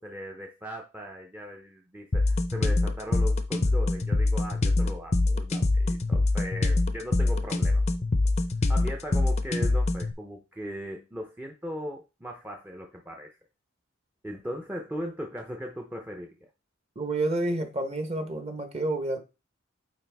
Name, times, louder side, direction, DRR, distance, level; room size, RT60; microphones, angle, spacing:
voice 1, 0.0-8.0 8.7-13.3 14.2-16.4, equal, 10° right, 0.6 m, -38 dB
sound 1, 2.1-10.1, left 2 dB, 35° left, 0.6 m, -24 dB
voice 2, 16.9-19.2, right 2 dB, 30° right, 1.1 m, -29 dB
8.8 x 3.4 x 3.4 m
head